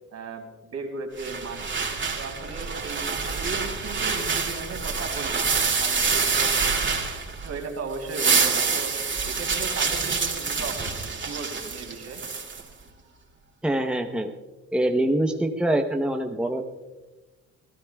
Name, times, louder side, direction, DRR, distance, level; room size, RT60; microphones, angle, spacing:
voice 1, 0.1-1.7 2.2-6.8 7.4-8.9 9.2-12.2, right 4 dB, 60° right, 3 dB, 3.3 m, -36 dB
sound 1, 1.2-7.6 7.9-12.6, right 5 dB, 40° right, 2.8 m, -26 dB
voice 2, 13.6-14.3 14.7-16.6, right 1 dB, 5° right, 3 dB, 0.9 m, -24 dB
27.5 x 15.5 x 2.4 m, 1.2 s
cardioid pair, 90°, 30 cm